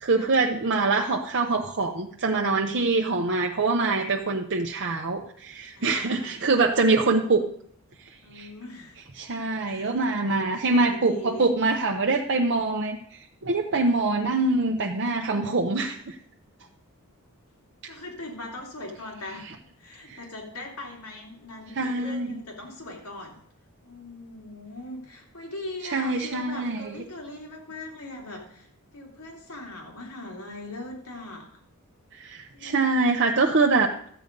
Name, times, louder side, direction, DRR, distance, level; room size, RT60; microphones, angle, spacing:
voice 1, 0.0-7.4 8.3-8.5 9.2-13.0 13.4-16.1 20.1-20.2 21.8-22.3 25.9-26.9 32.1-33.9, right 3 dB, 55° right, 2 dB, 0.8 m, -24 dB
voice 2, 5.7-6.7 8.2-9.0 9.6-11.4 16.6-16.7 17.9-23.4 23.8-31.5 32.5-33.3, left 2 dB, 80° left, 0 dB, 3.0 m, -40 dB
13.0 x 8.1 x 5.3 m, 0.65 s
head